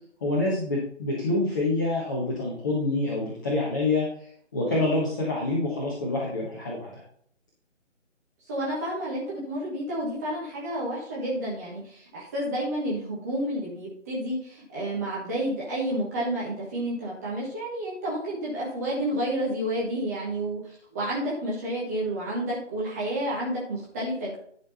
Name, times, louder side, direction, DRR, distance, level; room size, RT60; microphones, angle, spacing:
voice 1, 0.2-6.9, left 2 dB, 15° left, -5 dB, 1.2 m, -27 dB
voice 2, 8.5-24.4, right 1 dB, 15° right, -6 dB, 1.3 m, -30 dB
11.0 x 5.9 x 4.2 m, 0.63 s
figure-of-eight pair, 150°, 37 cm